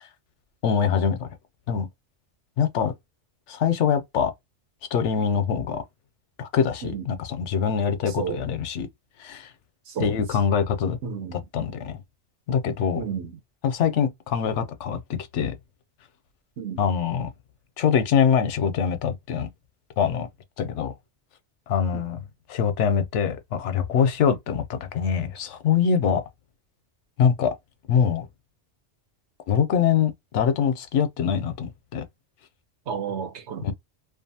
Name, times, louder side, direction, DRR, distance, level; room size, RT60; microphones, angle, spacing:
voice 1, 0.6-1.3 1.7-1.9 2.6-2.9 3.5-4.3 4.9-5.8 6.4-8.9 9.2-9.5 10.0-11.0 11.5-12.0 12.5-13.0 13.6-15.6 16.8-17.3 17.8-19.5 20.0-20.3 20.6-20.9 21.7-22.2 22.5-26.2 27.2-27.5 27.9-28.3 29.5-32.0 33.6-33.7, left 7 dB, 90° left, 0.9 m, -24 dB
voice 2, 8.1-8.4 9.9-10.1 11.0-11.5 13.0-13.4 16.6-16.8 21.9-22.0 32.9-33.7, right 7 dB, 75° right, 1.0 m, -32 dB
2.6 x 2.2 x 2.7 m
omnidirectional pair, 1.2 m